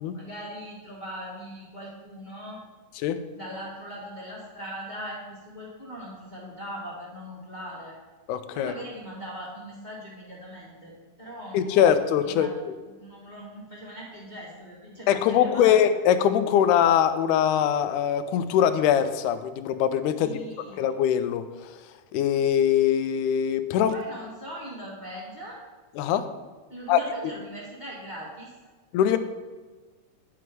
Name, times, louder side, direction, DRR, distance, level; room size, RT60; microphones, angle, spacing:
voice 1, 0.1-2.6 3.3-8.0 8.5-11.9 12.2-12.5 12.8-15.8 20.2-20.8 23.9-25.6 26.7-28.5 29.0-29.2, equal, 25° left, -5 dB, 1.0 m, -40 dB
voice 2, 8.3-8.7 11.5-12.5 15.1-20.4 20.8-21.4 22.1-23.9 26.0-26.2 26.9-27.0 28.9-29.2, left 9 dB, 80° left, 10 dB, 2.1 m, -22 dB
9.6 x 6.2 x 4.6 m, 1.3 s
omnidirectional pair, 3.6 m